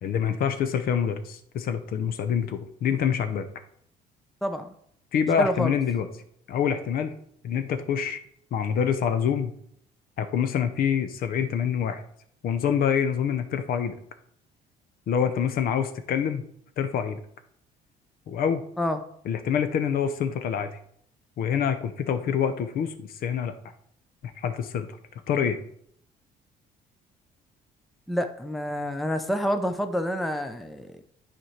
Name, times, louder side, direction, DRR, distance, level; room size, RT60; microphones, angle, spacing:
voice 1, 0.0-3.5 5.1-6.1 6.5-7.1 7.4-8.2 8.5-9.5 10.2-12.0 12.4-14.0 15.1-16.4 16.8-17.2 18.3-18.6 19.3-20.7 21.4-23.5 24.2-24.9 25.3-25.6, left 8 dB, 60° left, 9 dB, 0.7 m, -26 dB
voice 2, 4.4-4.7 5.4-5.7 18.8-19.0 28.1-30.9, equal, ahead, 7 dB, 0.5 m, -28 dB
9.6 x 4.4 x 3.2 m, 0.67 s
cardioid pair, 110°, 17 cm